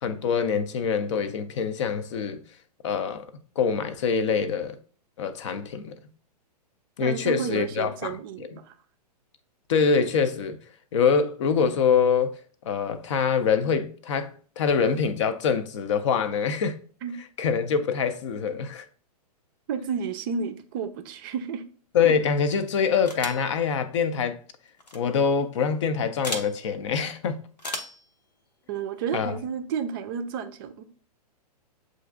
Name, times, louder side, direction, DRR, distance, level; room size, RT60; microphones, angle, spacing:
voice 1, 0.0-2.4 2.8-3.3 3.6-4.8 5.2-6.0 7.0-8.1 9.7-10.6 10.9-12.4 12.6-16.8 17.4-18.8 21.9-24.4 24.9-27.4 29.1-29.4, left 6 dB, 45° left, 0.5 m, -24 dB
voice 2, 7.0-8.7 17.0-17.2 19.7-21.6 28.7-30.8, right 6 dB, 35° right, 0.4 m, -31 dB
sound 1, 23.1-23.5 24.8-25.0 26.2-26.5 27.6-28.0, left 1 dB, 85° left, 0.8 m, -34 dB
7.5 x 2.5 x 2.5 m
figure-of-eight pair, 110°, 21 cm